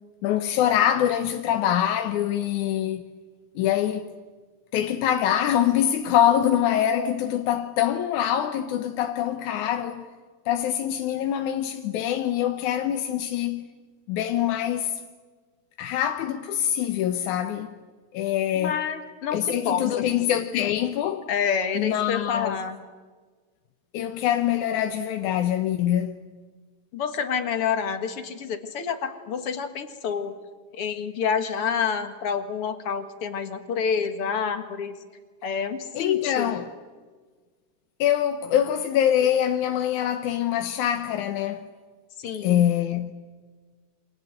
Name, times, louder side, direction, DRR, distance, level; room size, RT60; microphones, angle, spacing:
voice 1, 0.2-3.0 3.6-4.1 4.7-10.1 10.5-13.7 14.1-15.0 15.8-17.7 18.1-18.8 19.3-21.3 21.8-22.6 23.9-26.2 35.9-36.7 38.0-41.7 42.4-43.1, left 10 dB, 90° left, 2.4 m, -24 dB
voice 2, 18.5-20.1 21.3-22.8 26.9-30.4 30.7-35.0 35.4-36.5 42.2-42.6, left 6 dB, 55° left, 2.5 m, -28 dB
28.5 x 25.5 x 7.8 m
omnidirectional pair, 3.3 m